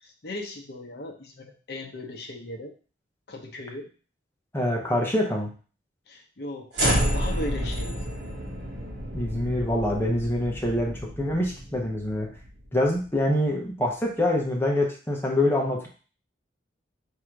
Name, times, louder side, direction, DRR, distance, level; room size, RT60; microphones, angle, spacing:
voice 1, 0.0-2.7 3.3-3.9 6.1-6.7 7.1-8.0, left 1 dB, 55° left, 2 dB, 0.8 m, -37 dB
voice 2, 4.5-5.5 9.1-12.3 12.7-15.9, left 1 dB, 10° left, -1 dB, 0.9 m, -25 dB
sound 1, 6.7-13.0, equal, 60° right, 1.4 m, -30 dB
3.7 x 2.8 x 4.6 m, 0.38 s
head